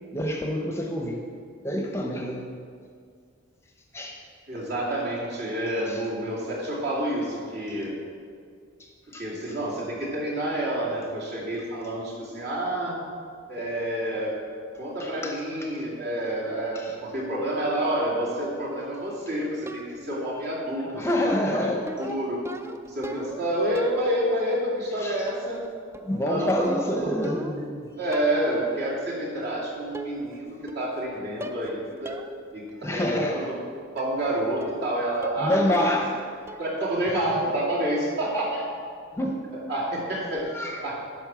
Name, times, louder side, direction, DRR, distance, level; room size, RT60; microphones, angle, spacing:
voice 1, 0.1-1.2 1.6-2.5 3.9-4.2 5.9-6.0 8.8-9.2 15.0-15.4 16.7-17.0 20.9-21.9 25.0-25.3 26.0-27.9 32.8-33.4 35.4-36.1 37.4-37.5 39.1-39.4 40.5-40.8, left 1 dB, 15° left, 1 dB, 0.7 m, -27 dB
voice 2, 4.5-7.9 9.2-12.9 13.5-14.4 14.8-21.1 21.4-21.7 22.0-22.4 22.8-25.6 26.2-27.1 28.0-32.2 32.5-33.6 33.9-35.8 36.6-38.7 39.7-40.5 40.8-41.0, right 1 dB, 55° right, -5 dB, 2.6 m, -28 dB
sound 1, 19.7-20.2 21.3-23.5 23.8-24.4 25.3-25.7 25.9-27.7 28.1-28.5 29.4-29.5 29.9-30.4 30.7-31.1 31.4-31.7 32.1-32.3 32.7-32.8 34.0-34.2 34.6-34.9 35.2-35.6 35.8-36.2 36.5-36.8, equal, 15° right, 0.3 m, -39 dB
10.5 x 5.4 x 6.1 m, 2.2 s
head